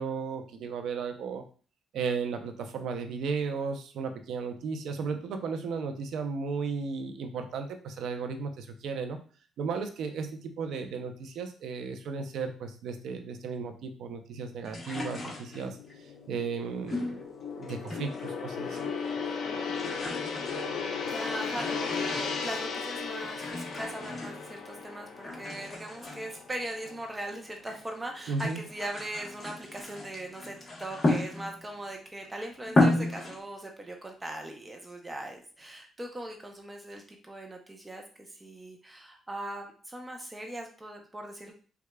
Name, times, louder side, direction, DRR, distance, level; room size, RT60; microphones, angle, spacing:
voice 1, 0.0-1.4 1.9-9.2 9.6-15.8 16.3-17.3 17.5-18.8 28.3-28.6, right 5 dB, 75° right, 6 dB, 0.5 m, -34 dB
sound 1, 14.6-15.9 16.9-18.3 18.6-19.2 19.5-22.6 23.2-24.8 25.2-27.9 28.2-31.8 32.2-32.3 32.6-33.4, left 2 dB, 35° left, 1.1 m, -33 dB
Gong, 15.3-27.5 27.8-28.1, left 5 dB, 70° left, 0.5 m, -36 dB
voice 2, 21.1-41.5, right 1 dB, 15° right, 2 dB, 0.6 m, -40 dB
4.8 x 2.3 x 2.2 m, 0.40 s
cardioid pair, 90°, 0 cm